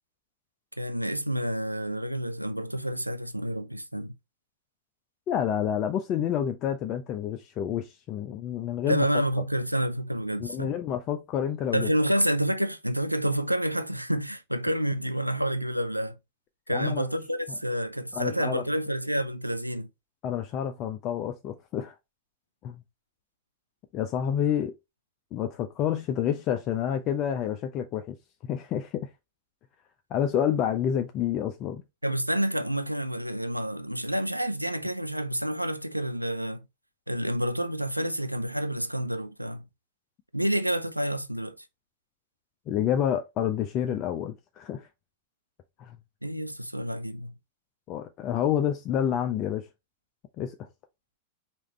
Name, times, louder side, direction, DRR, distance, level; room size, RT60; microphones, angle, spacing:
voice 1, 0.8-4.1 8.9-10.8 11.7-16.2 16.7-19.9 32.0-36.6 37.1-39.6 40.3-41.7 46.2-47.3, right 1 dB, 90° right, 0.4 m, -29 dB
voice 2, 5.3-9.1 10.4-11.9 16.7-17.1 18.1-18.6 20.2-21.9 22.6-22.8 23.9-24.7 25.3-28.2 28.4-29.1 30.1-31.8 42.7-44.9 45.8-46.0 47.9-49.7 50.4-50.7, left 9 dB, 35° left, 0.5 m, -29 dB
4.9 x 3.0 x 3.1 m
figure-of-eight pair, 90°, 0 cm